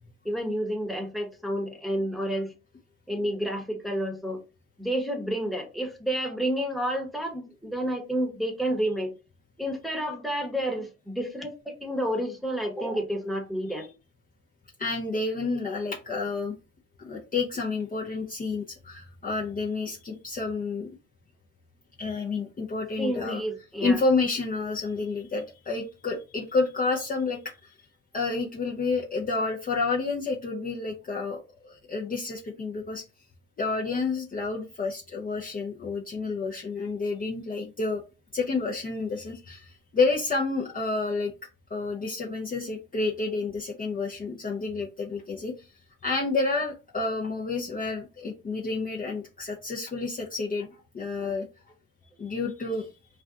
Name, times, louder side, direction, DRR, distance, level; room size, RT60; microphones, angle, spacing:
voice 1, 0.2-2.5 3.1-4.4 4.8-9.1 9.6-13.9 22.9-24.0, equal, ahead, 3 dB, 1.0 m, -30 dB
voice 2, 14.8-16.6 17.0-20.9 22.0-23.4 23.8-27.7 28.1-33.0 33.6-38.0 38.3-41.3 41.7-45.7 46.0-50.7 50.9-51.5 52.2-52.9, left 3 dB, 30° left, -2 dB, 0.6 m, -29 dB
2.5 x 2.2 x 3.6 m, 0.30 s
supercardioid pair, 70°, 31 cm